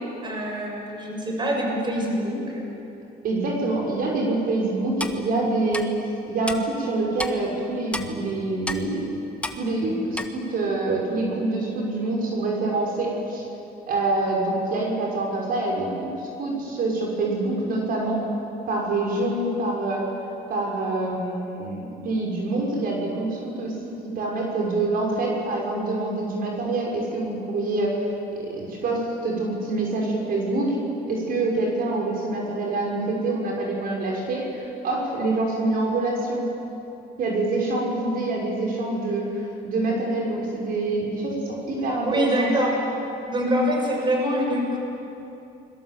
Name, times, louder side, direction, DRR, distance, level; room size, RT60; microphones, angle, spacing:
voice 1, 0.2-2.7 42.0-42.8 43.3-44.8, equal, 25° right, 0 dB, 6.5 m, -24 dB
voice 2, 3.2-5.9 6.3-9.0 9.5-13.4 13.9-18.2 18.7-20.0 20.5-28.1 28.3-30.8 31.1-36.5 37.2-42.5, right 2 dB, 60° right, -1 dB, 6.4 m, -26 dB
Clock, 5.0-5.2 5.7-5.8 6.5-6.6 7.2-7.3 7.9-8.1 8.7-8.8 9.4-9.6 10.1-10.3, left 1 dB, 5° left, 1.6 m, -29 dB
29.0 x 22.5 x 7.9 m, 2.8 s
cardioid pair, 110°, 17 cm